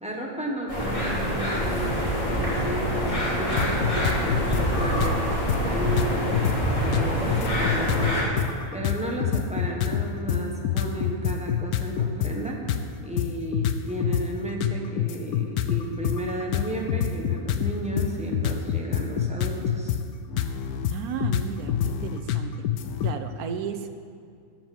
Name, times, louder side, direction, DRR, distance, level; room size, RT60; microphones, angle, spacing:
voice 1, 0.0-5.2 5.6-6.3 6.8-8.2 8.7-12.6 13.0-19.9, right 1 dB, 5° right, -2 dB, 1.3 m, -33 dB
sound 1, 0.7-8.2, equal, 20° left, 2.8 m, -26 dB
sound 2, 3.5-4.6 5.0-5.1 5.5-5.6 5.8-6.6 6.9-12.3 12.7-12.8 13.2-14.2 14.6-20.0 20.3-23.1, left 10 dB, 85° left, 1.1 m, -26 dB
voice 2, 20.9-22.6 23.0-23.9, right 7 dB, 85° right, 8 dB, 1.2 m, -33 dB
13.0 x 5.3 x 7.2 m, 2.3 s
omnidirectional pair, 1.5 m